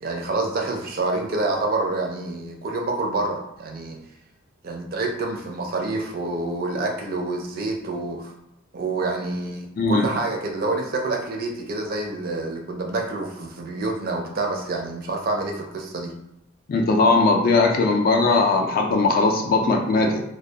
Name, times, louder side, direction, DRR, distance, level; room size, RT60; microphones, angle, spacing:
voice 1, 0.0-4.0 4.6-8.3 8.7-16.1, right 2 dB, 45° right, 1 dB, 0.4 m, -27 dB
voice 2, 9.8-10.1 16.7-20.2, left 3 dB, 45° left, 2 dB, 0.3 m, -19 dB
2.3 x 2.2 x 2.7 m, 0.81 s
head